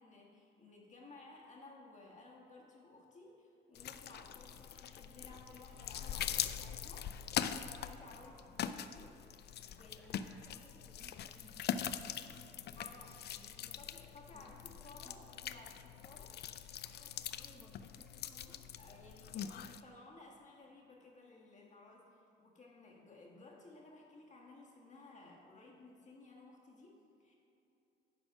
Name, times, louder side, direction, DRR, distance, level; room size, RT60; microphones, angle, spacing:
voice 1, 0.0-7.1 7.6-9.2 9.7-10.2 12.8-13.2 13.6-16.4 18.8-27.3, left 2 dB, 40° left, -2 dB, 1.7 m, -57 dB
sound 1, 3.7-19.8, left 9 dB, 55° left, 0.4 m, -43 dB
voice 2, 8.2-8.6 9.8-15.2 16.9-18.6, equal, ahead, -3 dB, 1.1 m, -63 dB
10.0 x 4.1 x 6.0 m, 2.9 s
cardioid pair, 90°, 20 cm